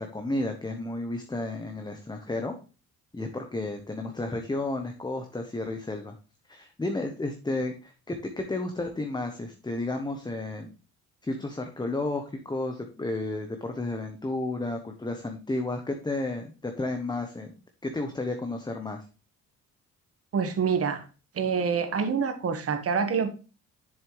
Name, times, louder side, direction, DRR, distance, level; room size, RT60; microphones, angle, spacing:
voice 1, 0.0-2.5 3.1-6.2 6.5-10.7 11.2-17.5 17.8-19.0, left 2 dB, 15° left, 5 dB, 1.0 m, -32 dB
voice 2, 20.3-21.0 21.3-23.3, right 6 dB, 50° right, 7 dB, 1.5 m, -26 dB
7.3 x 6.9 x 3.2 m, 0.34 s
cardioid pair, 90°, 30 cm